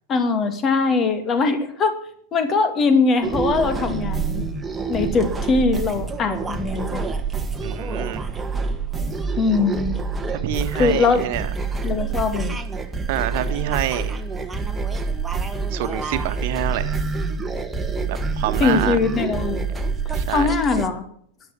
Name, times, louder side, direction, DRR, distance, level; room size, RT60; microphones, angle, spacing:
voice 1, 0.1-2.0 2.3-4.4 4.9-7.0 9.4-10.0 10.7-11.2 11.8-12.5 18.6-19.7 20.1-21.0, left 4 dB, 25° left, 8 dB, 2.4 m, -21 dB
sound 1, 3.2-20.9, right 4 dB, 10° right, 1.8 m, -27 dB
voice 2, 7.6-8.2 10.3-11.5 13.1-14.1 15.7-17.0 18.1-19.0 20.1-20.5, right 11 dB, 50° right, 9 dB, 1.6 m, -27 dB
13.5 x 11.0 x 7.6 m, 0.63 s
figure-of-eight pair, 90°, 0 cm